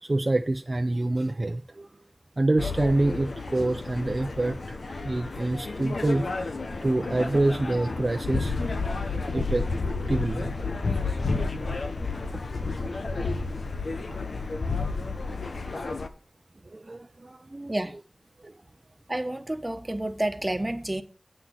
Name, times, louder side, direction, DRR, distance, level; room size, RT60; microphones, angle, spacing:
voice 1, 0.0-1.9 2.4-4.8 5.0-6.5 6.8-8.6 9.3-9.6 10.1-10.5 14.1-14.2 16.7-18.0 18.4-18.5, right 2 dB, 45° right, 0.6 m, -27 dB
sound 1, 2.6-16.1, left 3 dB, 85° left, 1.0 m, -31 dB
voice 2, 19.1-21.0, right 1 dB, 25° right, 1.2 m, -29 dB
8.5 x 6.1 x 7.6 m
wide cardioid pair, 60°, 0 cm